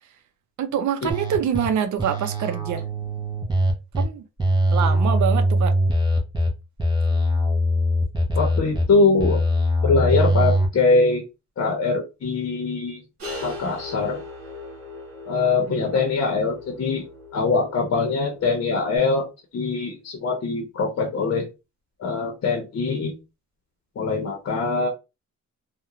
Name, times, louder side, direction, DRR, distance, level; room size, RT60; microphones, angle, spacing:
voice 1, 0.6-2.8 4.0-4.2 4.7-5.7 15.7-16.0, right 8 dB, 75° right, 0.5 m, -25 dB
sound 1, 1.1-1.7 2.0-4.0 4.4-6.5 6.8-8.8 9.2-10.7, equal, 15° right, 0.6 m, -21 dB
voice 2, 8.4-9.4 9.8-11.2 11.6-13.0 13.4-14.2 15.2-17.0 17.3-19.3 19.5-21.5 22.0-23.2 24.0-24.9, left 3 dB, 50° left, 0.7 m, -22 dB
sound 2, 13.2-19.0, left 2 dB, 50° right, 1.3 m, -39 dB
2.4 x 2.1 x 2.9 m
wide cardioid pair, 170°, 30 cm